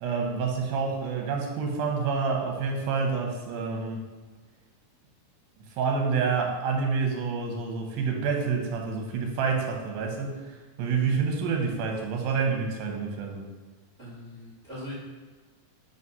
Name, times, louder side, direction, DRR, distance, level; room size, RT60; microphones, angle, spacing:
voice 1, 0.0-4.0 5.8-13.5, right 5 dB, 80° right, 1 dB, 2.7 m, -28 dB
voice 2, 14.0-14.9, left 1 dB, 65° right, -10 dB, 0.7 m, -41 dB
5.0 x 4.1 x 5.3 m, 1.4 s
omnidirectional pair, 4.2 m